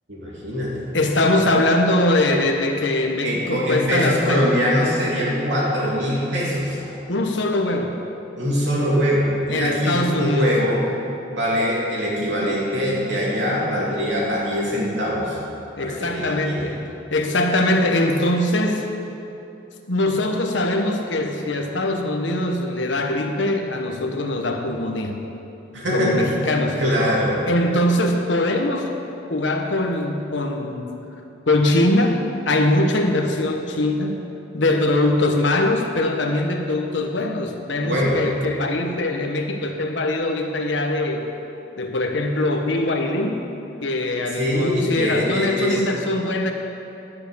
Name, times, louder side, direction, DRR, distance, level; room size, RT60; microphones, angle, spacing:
voice 1, 0.1-0.9 1.3-1.4 3.2-6.8 8.4-10.8 11.3-15.4 15.8-16.7 25.7-26.3 26.8-27.4 37.8-38.2 44.3-45.8, equal, 70° right, -5 dB, 2.9 m, -22 dB
voice 2, 0.9-4.5 7.1-7.9 9.5-10.6 15.8-16.8 17.1-18.9 19.9-25.2 25.9-26.8 27.5-28.9 29.3-30.9 31.5-32.1 32.5-34.2 34.5-41.2 41.8-43.4 43.8-46.5, left 1 dB, 75° left, 3 dB, 1.2 m, -22 dB
12.0 x 6.9 x 6.9 m, 2.9 s
head